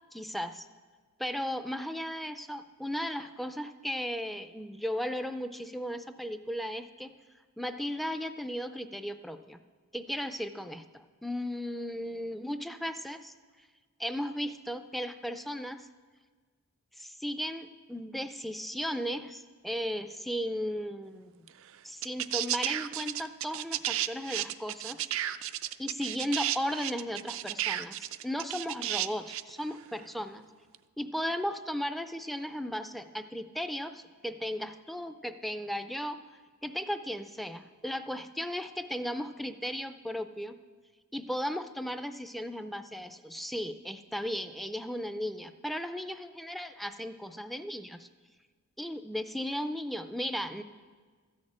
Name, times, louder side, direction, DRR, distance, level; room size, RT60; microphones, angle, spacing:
voice 1, 0.1-0.7 1.2-7.1 7.6-9.6 9.9-13.3 14.0-15.9 17.0-21.3 21.8-25.1 25.4-25.5 25.8-30.5 31.0-36.2 36.6-40.6 41.1-48.1 48.8-50.6, equal, ahead, 9 dB, 0.4 m, -36 dB
sound 1, 21.5-21.6 22.0-29.5 30.7-30.8, right 13 dB, 65° right, 0.4 m, -33 dB
13.5 x 6.5 x 8.6 m, 1.5 s
head